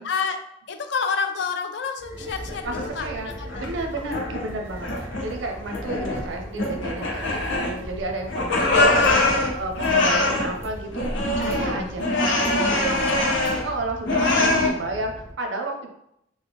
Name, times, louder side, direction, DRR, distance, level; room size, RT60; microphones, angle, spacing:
voice 1, 0.0-3.7 7.3-7.5 12.9-13.4, left 5 dB, 70° left, 6 dB, 0.4 m, -29 dB
sound 1, 2.0-15.3, right 1 dB, 15° right, 0.4 m, -39 dB
sound 2, 2.2-3.1 3.5-4.5 4.8-5.4 5.7-6.3 6.6-8.0 8.3-10.5 10.9-13.7 14.0-14.7, left 2 dB, 90° left, 0.7 m, -23 dB
voice 2, 3.0-3.3 3.6-11.1 11.4-12.1 12.4-13.4 13.6-15.9, right 2 dB, 90° right, 3 dB, 0.6 m, -32 dB
3.2 x 2.1 x 3.4 m, 0.77 s
head